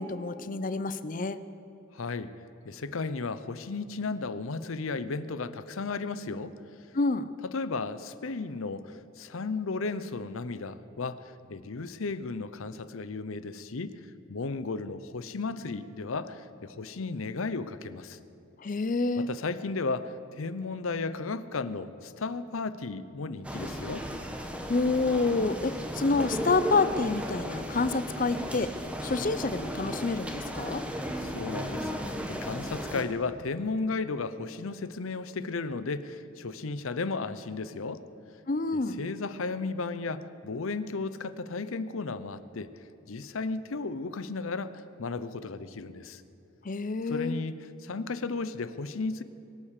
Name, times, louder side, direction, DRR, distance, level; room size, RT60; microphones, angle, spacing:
voice 1, 0.0-1.4 6.9-7.3 18.6-19.3 24.7-28.7 29.0-30.8 38.5-39.0 46.6-47.4, left 3 dB, 40° left, 13 dB, 0.5 m, -28 dB
voice 2, 1.9-2.3 2.6-6.5 7.4-14.0 14.3-18.2 19.2-24.0 31.2-31.9 32.3-38.0 38.7-42.7 43.1-46.2 47.1-47.6 47.8-49.2, left 3 dB, 75° left, 14 dB, 0.7 m, -34 dB
sound 1, 23.4-33.0, equal, 5° right, 1.0 m, -35 dB
23.0 x 8.8 x 6.6 m, 2.9 s
head